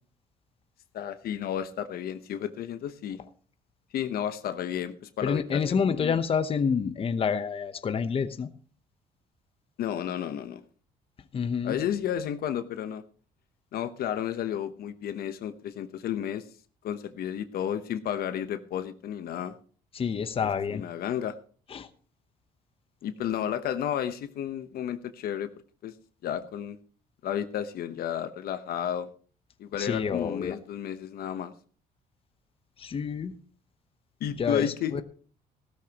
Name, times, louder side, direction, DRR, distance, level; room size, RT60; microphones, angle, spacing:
voice 1, 0.9-3.2 3.9-6.2 9.8-10.6 11.6-13.0 13.7-16.5 16.8-19.5 20.7-21.4 23.0-25.5 25.8-25.9 26.2-26.8 27.2-29.1 29.6-31.5 34.2-35.0, left 9 dB, 65° left, 11 dB, 1.0 m, -32 dB
voice 2, 5.2-8.5 11.3-11.7 19.9-20.8 21.7-21.9 29.8-30.6 32.8-33.3 34.4-35.0, left 6 dB, 35° left, 11 dB, 0.9 m, -28 dB
16.0 x 13.5 x 3.0 m, 0.42 s
cardioid pair, 110°, 17 cm